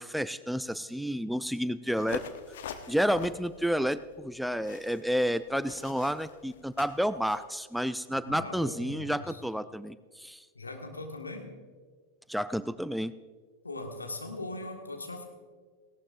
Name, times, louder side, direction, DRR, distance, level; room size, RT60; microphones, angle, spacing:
voice 1, 0.0-2.2 2.9-10.5 12.3-13.1, equal, ahead, 15 dB, 0.3 m, -30 dB
sound 1, 2.0-7.5, left 8 dB, 60° left, 0.9 m, -45 dB
voice 2, 8.3-9.4 10.5-11.5 13.6-15.3, left 2 dB, 80° left, 2 dB, 1.8 m, -40 dB
18.0 x 17.0 x 2.6 m, 1.5 s
figure-of-eight pair, 90°, 0 cm